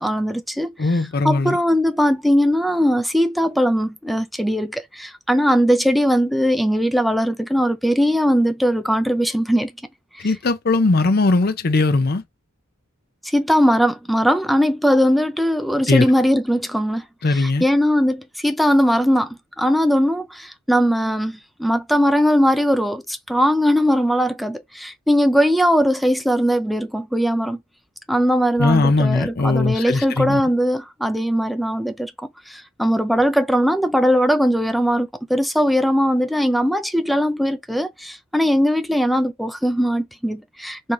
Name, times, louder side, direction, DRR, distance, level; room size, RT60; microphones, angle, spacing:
voice 1, 0.0-0.7 1.2-9.7 10.2-10.3 13.2-17.0 17.3-27.6 28.1-40.9, equal, ahead, 0.4 m, -19 dB
voice 2, 0.8-1.6 10.2-12.2 15.9-16.0 17.2-17.6 28.6-30.4, left 3 dB, 45° left, 0.6 m, -19 dB
3.7 x 2.8 x 4.6 m
head